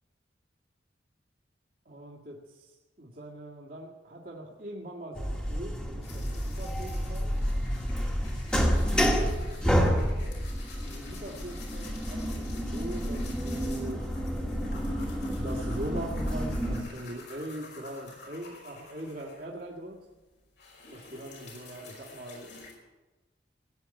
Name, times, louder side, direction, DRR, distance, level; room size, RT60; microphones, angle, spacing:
voice 1, 1.9-7.3 10.8-14.1 15.3-20.0 20.9-22.5, right 1 dB, 50° right, -3 dB, 2.1 m, -41 dB
sound 1, 5.2-16.8, equal, 5° left, 1.7 m, -29 dB
sound 2, 6.0-19.8 20.1-22.7, left 3 dB, 70° left, 5.1 m, -50 dB
17.5 x 9.3 x 8.9 m, 1.2 s
head